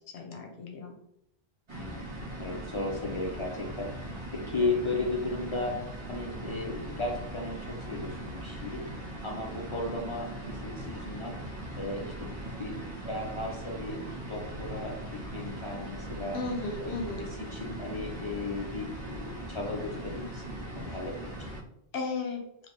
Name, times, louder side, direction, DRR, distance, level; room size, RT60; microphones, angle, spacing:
voice 1, 0.1-0.9 16.3-17.3 20.9-21.0 21.9-22.4, left 3 dB, 80° left, 2 dB, 0.9 m, -35 dB
sound 1, 1.7-21.6, right 1 dB, 35° right, 0.6 m, -40 dB
voice 2, 1.8-3.9 4.3-5.8 6.1-8.8 9.2-11.4 11.7-12.1 12.6-12.8 13.0-14.9 15.3-16.4 16.8-16.9 17.2-20.4 20.7-21.1, left 2 dB, 45° left, -1 dB, 0.4 m, -35 dB
3.2 x 2.6 x 2.8 m, 0.80 s
omnidirectional pair, 1.1 m